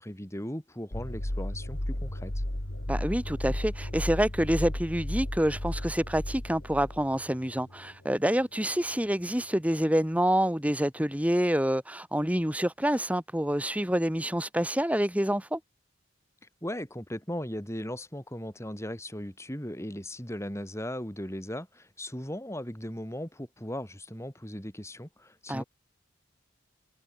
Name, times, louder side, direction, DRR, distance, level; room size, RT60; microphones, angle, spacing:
voice 1, 0.0-2.4 16.6-25.6, left 1 dB, 15° left, 6.0 m, -37 dB
sound 1, 0.9-8.1, left 1 dB, 65° left, 2.9 m, -34 dB
voice 2, 2.9-15.6 25.5-25.6, equal, 5° right, 1.9 m, -27 dB
head